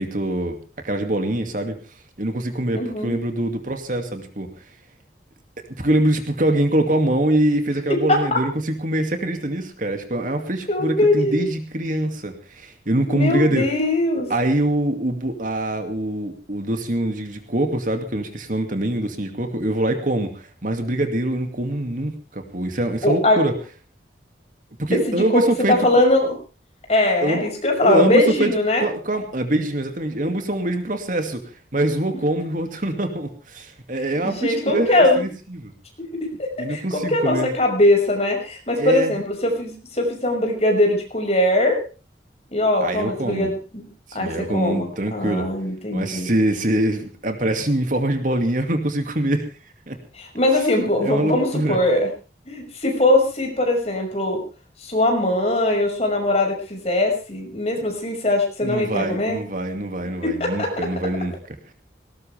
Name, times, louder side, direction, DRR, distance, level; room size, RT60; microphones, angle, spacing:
voice 1, 0.0-1.8 2.2-4.5 5.8-13.7 14.3-23.5 24.8-26.0 27.2-27.5 27.8-35.7 36.6-37.5 38.8-39.1 42.8-43.5 44.1-45.5 45.9-49.4 49.9-50.0 51.0-51.8 58.6-61.7, right 1 dB, 50° right, 5 dB, 2.4 m, -24 dB
voice 2, 2.7-3.1 7.9-8.4 10.7-11.4 13.1-14.3 23.0-23.4 25.1-25.4 25.7-26.3 26.9-28.9 34.2-35.2 36.4-41.8 42.5-43.9 44.1-46.3 50.1-52.1 52.5-54.4 54.8-59.4 60.2-60.7, left 1 dB, 35° left, 2 dB, 6.1 m, -21 dB
19.0 x 19.0 x 3.5 m, 0.34 s
head